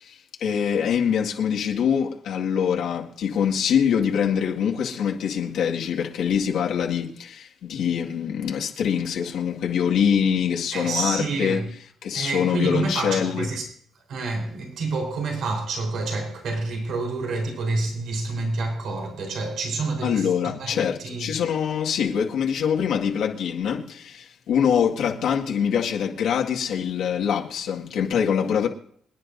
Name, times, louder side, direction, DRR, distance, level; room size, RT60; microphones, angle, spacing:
voice 1, 0.0-11.6 12.0-13.5 20.0-28.7, left 8 dB, 80° left, 1.9 m, -24 dB
voice 2, 10.7-11.7 12.1-13.6 14.1-21.3, right 3 dB, 75° right, 4.1 m, -28 dB
27.0 x 10.0 x 2.7 m
cardioid pair, 90°, 0 cm